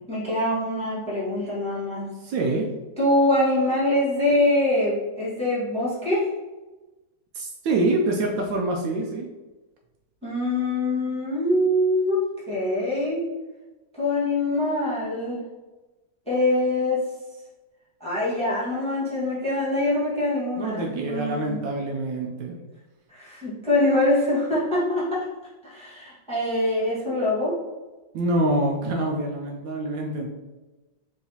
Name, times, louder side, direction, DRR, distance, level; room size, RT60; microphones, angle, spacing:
voice 1, 0.1-2.1 3.0-6.3 10.2-13.2 14.0-15.4 16.3-17.0 18.0-21.6 23.1-25.2 25.6-27.5, left 1 dB, 5° left, -8 dB, 1.1 m, -24 dB
voice 2, 2.2-2.7 7.3-9.3 20.6-22.6 28.1-30.3, right 2 dB, 75° right, 1 dB, 1.2 m, -25 dB
4.7 x 2.8 x 2.8 m, 1.1 s
omnidirectional pair, 2.1 m